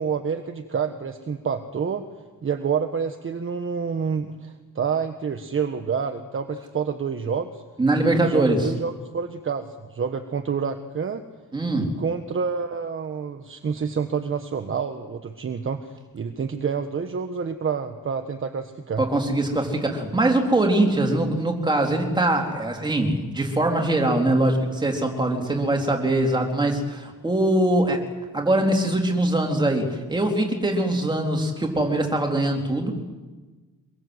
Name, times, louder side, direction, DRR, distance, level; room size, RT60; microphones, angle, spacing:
voice 1, 0.0-2.1 2.4-7.6 8.1-11.2 11.8-19.0 21.0-21.2, right 6 dB, 40° right, 6 dB, 1.4 m, -28 dB
voice 2, 7.8-8.7 11.5-11.9 19.0-28.0 28.3-32.9, right 1 dB, 15° right, 1 dB, 3.9 m, -22 dB
25.0 x 22.5 x 8.1 m, 1.3 s
wide cardioid pair, 160°, 33 cm